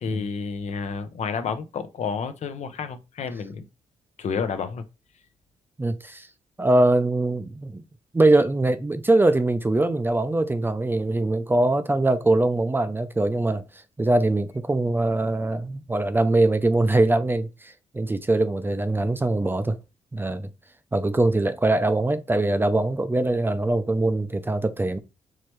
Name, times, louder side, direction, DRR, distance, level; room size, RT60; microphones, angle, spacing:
voice 1, 0.0-3.7 4.2-4.8, left 6 dB, 60° left, 0.6 m, -30 dB
voice 2, 5.8-6.3 6.6-7.8 8.1-13.6 14.0-19.8 20.1-20.5 20.9-25.0, right 2 dB, 15° right, 0.5 m, -22 dB
4.7 x 3.1 x 3.0 m
cardioid pair, 80°, 13 cm